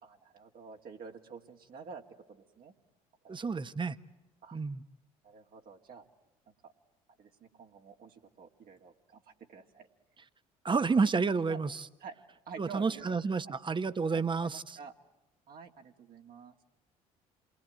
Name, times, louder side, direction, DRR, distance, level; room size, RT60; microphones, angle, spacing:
voice 1, 0.0-2.0 2.3-2.7 3.2-3.4 4.4-4.6 5.2-6.0 6.5-6.7 7.2-9.9 11.5-11.6 12.0-12.2 12.5-13.2 13.4-13.5 14.1-14.9 15.5-16.5, right 5 dB, 55° right, 2 dB, 2.2 m, -49 dB
voice 2, 3.3-4.0 4.5-4.8 10.6-11.8 12.6-14.8, right 4 dB, 25° right, 13 dB, 1.2 m, -30 dB
28.0 x 21.5 x 9.0 m, 0.97 s
hypercardioid pair, 55°, 19 cm